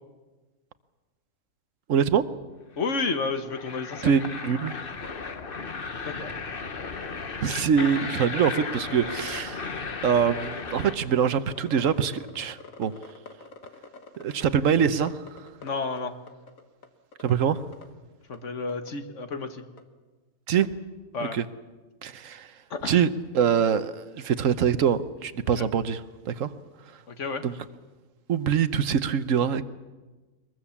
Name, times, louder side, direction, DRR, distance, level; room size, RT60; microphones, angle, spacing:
voice 1, 1.9-2.2 4.0-4.7 7.4-9.7 10.0-12.9 14.2-15.5 17.2-17.6 20.5-20.7 21.2-21.5 22.0-22.5 22.8-26.5 27.4-27.5 28.3-29.6, right 7 dB, 70° right, 13 dB, 1.3 m, -24 dB
voice 2, 2.8-4.1 6.0-6.3 15.6-16.1 18.3-19.6 21.1-21.4 22.7-23.0 25.6-25.7 27.1-27.4, left 4 dB, 65° left, 8 dB, 1.8 m, -31 dB
sound 1, 2.8-11.0, left 4 dB, 45° left, 1.3 m, -35 dB
sound 2, 10.4-14.5 14.8-16.0 16.3-16.9 17.1-17.8 18.3-18.4 18.7-18.9 19.3-19.4 19.8-19.9 20.6-20.7, left 4 dB, 80° left, 1.9 m, -45 dB
22.0 x 22.0 x 7.2 m, 1.2 s
omnidirectional pair, 1.4 m